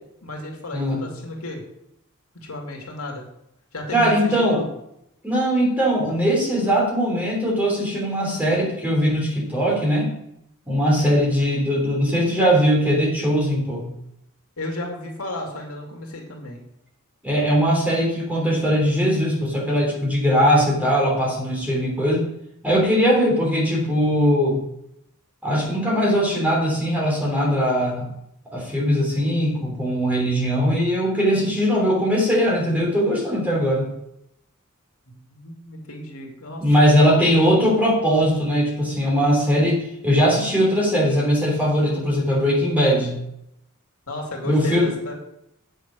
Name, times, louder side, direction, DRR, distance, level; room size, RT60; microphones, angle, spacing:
voice 1, 0.2-1.6 2.4-3.2 3.7-4.6 11.4-11.5 14.6-16.6 35.1-37.5 44.1-45.1, left 1 dB, 80° left, 0 dB, 2.5 m, -33 dB
voice 2, 0.7-1.0 3.9-4.6 5.2-10.1 10.7-13.9 17.2-22.3 22.6-24.6 25.4-28.1 28.5-33.9 36.6-43.2 44.4-44.9, equal, 5° right, -3 dB, 3.3 m, -20 dB
8.3 x 6.5 x 6.1 m, 0.79 s
head